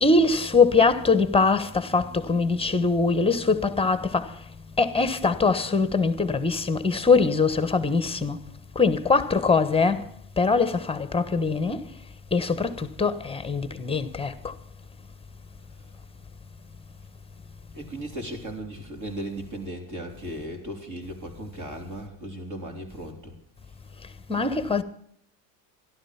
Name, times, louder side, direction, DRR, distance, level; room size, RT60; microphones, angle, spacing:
voice 1, 0.0-4.3 4.8-8.4 8.7-10.0 10.4-11.8 12.3-14.5 24.3-24.8, left 4 dB, 10° left, 1.2 m, -22 dB
voice 2, 17.7-23.4, right 1 dB, 35° right, 4.0 m, -36 dB
12.5 x 12.0 x 5.8 m
supercardioid pair, 95°, 49 cm